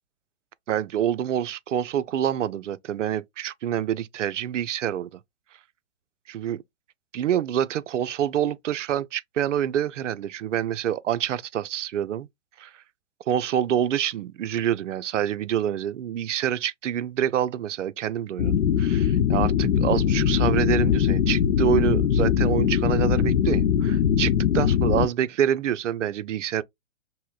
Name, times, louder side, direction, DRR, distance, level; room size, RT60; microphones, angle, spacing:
voice 1, 0.7-5.2 6.3-6.6 7.1-12.3 12.6-12.7 13.3-26.6, right 10 dB, 75° right, 0.5 m, -27 dB
sound 1, 18.4-25.1, left 8 dB, 85° left, 0.5 m, -21 dB
5.5 x 2.1 x 2.3 m
hypercardioid pair, 125°, 37 cm